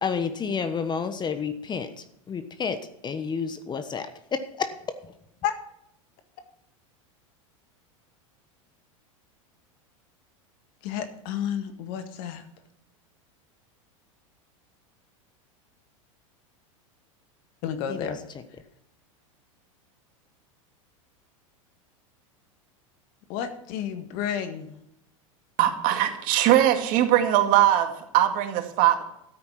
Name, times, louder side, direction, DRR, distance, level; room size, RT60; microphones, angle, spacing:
voice 1, 0.0-5.1 17.9-18.2, left 6 dB, 25° left, 11 dB, 1.2 m, -31 dB
voice 2, 10.8-12.4 17.6-18.2 23.3-24.8, left 9 dB, 55° left, 8 dB, 1.9 m, -31 dB
voice 3, 25.6-29.0, right 12 dB, 55° right, 6 dB, 2.2 m, -21 dB
13.0 x 8.7 x 6.0 m, 0.78 s
hypercardioid pair, 100°, 17 cm